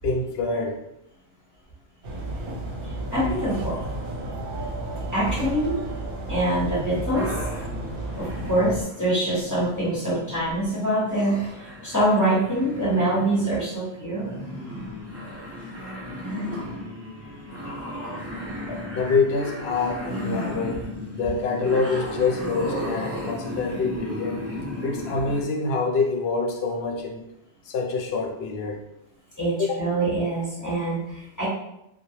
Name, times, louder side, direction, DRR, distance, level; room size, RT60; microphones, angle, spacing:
voice 1, 0.0-0.8 18.7-24.4 24.8-27.2 27.7-28.8 29.6-29.8, left 4 dB, 70° left, 2 dB, 0.8 m, -26 dB
sound 1, 2.0-8.8, right 1 dB, 60° right, 0.9 m, -32 dB
voice 2, 3.1-3.8 5.1-5.8 6.3-7.3 8.2-14.4 29.4-31.5, right 1 dB, 15° left, -10 dB, 1.1 m, -24 dB
sound 2, 7.1-25.4, left 1 dB, 15° right, 0.6 m, -35 dB
3.0 x 2.2 x 2.8 m, 0.83 s
omnidirectional pair, 1.1 m